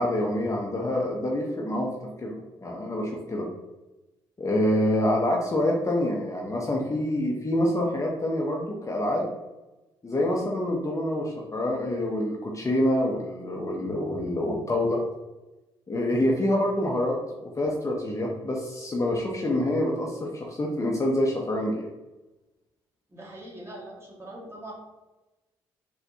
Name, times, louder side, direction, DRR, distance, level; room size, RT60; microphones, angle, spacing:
voice 1, 0.0-1.9 2.2-3.5 4.4-9.3 10.0-15.0 15.9-21.9, left 1 dB, 25° left, -1 dB, 0.6 m, -26 dB
voice 2, 23.1-24.7, right 1 dB, 25° right, -4 dB, 1.5 m, -42 dB
4.1 x 2.1 x 2.7 m, 1.1 s
hypercardioid pair, 45°, 12 cm